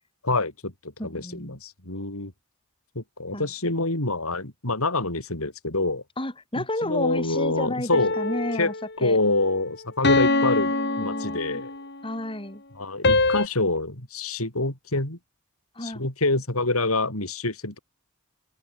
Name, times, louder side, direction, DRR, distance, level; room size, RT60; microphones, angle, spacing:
voice 1, 0.2-2.3 3.0-6.0 6.6-8.2 8.5-8.7 9.0-11.7 12.8-15.2 15.8-17.8, left 2 dB, 90° left, 5.6 m, -26 dB
voice 2, 1.0-1.6 3.3-3.5 6.2-8.7 9.0-9.2 10.2-11.6 12.0-12.6 15.7-16.0, left 1 dB, 25° left, 6.9 m, -32 dB
sound 1, 7.9-8.9 10.0-11.9 13.0-13.5, left 2 dB, 55° left, 4.6 m, -24 dB
open air
head